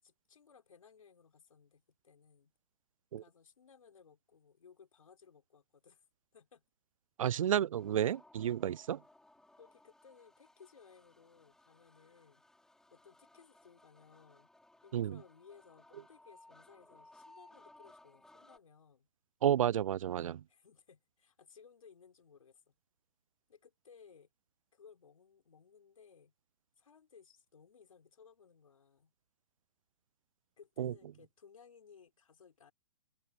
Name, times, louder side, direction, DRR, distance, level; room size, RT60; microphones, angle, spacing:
voice 1, 0.0-2.5 3.2-6.0 6.3-6.6 8.0-8.2 9.6-12.4 12.9-14.5 14.8-19.1 20.5-22.7 23.5-24.3 24.7-26.3 26.8-29.1 30.6-32.7, left 6 dB, 90° left, 5.1 m, -61 dB
voice 2, 7.2-9.0 14.9-15.2 19.4-20.4 30.8-30.9, right 10 dB, 75° right, 0.4 m, -31 dB
sound 1, 7.8-18.6, left 2 dB, 5° left, 6.6 m, -62 dB
open air
hypercardioid pair, 150°, 17 cm